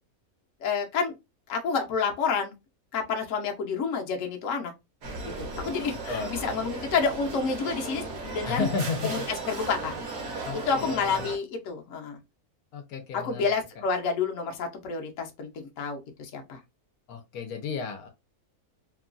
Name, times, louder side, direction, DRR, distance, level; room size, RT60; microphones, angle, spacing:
voice 1, 0.6-1.1 1.5-2.5 2.9-4.7 5.2-8.7 9.0-9.2 9.5-9.9 10.7-12.2 13.1-16.6, left 5 dB, 65° left, 1.0 m, -29 dB
sound 1, 5.0-11.4, right 3 dB, 50° right, 1.0 m, -36 dB
voice 2, 8.4-9.2 10.4-11.3 12.7-13.5 17.1-18.1, left 5 dB, 85° left, 1.2 m, -33 dB
3.0 x 2.3 x 2.4 m
omnidirectional pair, 1.6 m